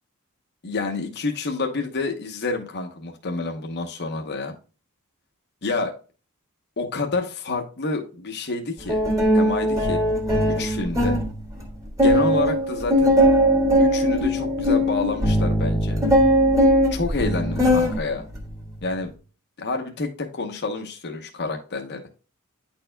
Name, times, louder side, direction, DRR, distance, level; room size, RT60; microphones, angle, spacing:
voice 1, 0.6-4.5 5.6-5.9 6.8-9.0 9.3-10.0 10.5-11.2 12.0-13.1 13.8-16.0 16.9-18.2 18.8-19.1 19.6-22.0, left 3 dB, 50° left, 4 dB, 0.9 m, -28 dB
sound 1, 8.9-11.3 11.6-11.7 12.0-18.0 18.4-18.8, equal, 15° right, 1.6 m, -20 dB
9.6 x 4.4 x 2.2 m, 0.36 s
head